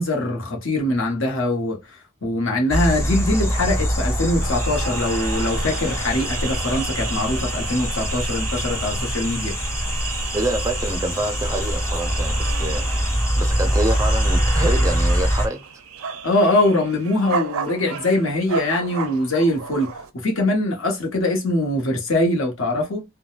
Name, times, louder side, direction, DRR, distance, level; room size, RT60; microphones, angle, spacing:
voice 1, 0.0-9.5 16.2-23.0, left 1 dB, 65° left, 1.1 m, -22 dB
sound 1, 2.7-15.5, equal, 15° left, 0.8 m, -23 dB
sound 2, 4.4-20.1, right 6 dB, 85° right, 0.5 m, -33 dB
voice 2, 10.3-12.8 13.4-15.6, right 2 dB, 15° right, 0.5 m, -26 dB
3.7 x 2.2 x 2.4 m
head